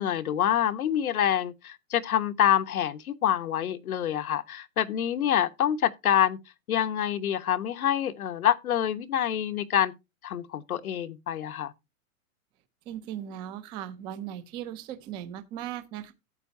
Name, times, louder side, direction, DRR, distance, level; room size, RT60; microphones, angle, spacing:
voice 1, 0.0-6.4 6.7-9.9 10.2-11.7, left 10 dB, 85° left, 1.3 m, -26 dB
voice 2, 12.9-16.1, right 11 dB, 10° right, 0.5 m, -38 dB
12.5 x 8.5 x 2.7 m
hypercardioid pair, 155°, 42 cm